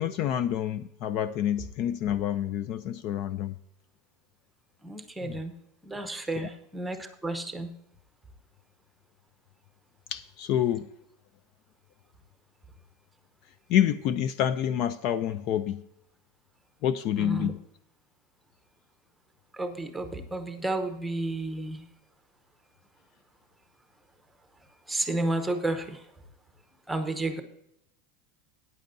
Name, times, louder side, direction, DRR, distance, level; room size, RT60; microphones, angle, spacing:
voice 1, 0.0-3.5 5.2-5.4 6.4-6.5 10.1-10.9 13.7-15.8 16.8-17.6, left 10 dB, 40° left, 14 dB, 0.4 m, -28 dB
voice 2, 4.8-5.5 5.9-7.7 17.2-17.5 19.6-21.8 24.9-26.0 26.9-27.4, right 2 dB, 5° right, 7 dB, 0.8 m, -31 dB
14.0 x 9.4 x 2.6 m, 0.79 s
supercardioid pair, 170°, 0 cm